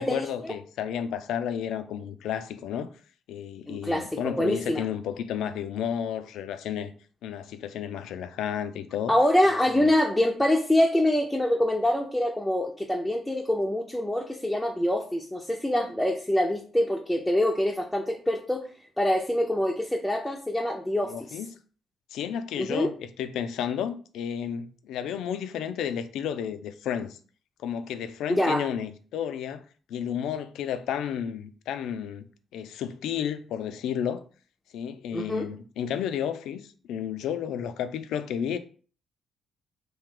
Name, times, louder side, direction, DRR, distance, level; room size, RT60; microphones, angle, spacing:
voice 1, 0.0-2.9 3.3-6.9 7.2-9.1 9.7-9.9 21.1-21.5 22.1-27.2 27.6-29.6 29.9-32.3 32.5-34.2 34.7-38.6, left 9 dB, 85° left, 0.3 m, -32 dB
voice 2, 3.7-4.8 9.1-18.7 19.0-21.4 22.6-22.9 28.3-28.7 35.1-35.5, left 1 dB, 5° left, 0.5 m, -25 dB
3.0 x 2.8 x 3.7 m
cardioid pair, 90°, 0 cm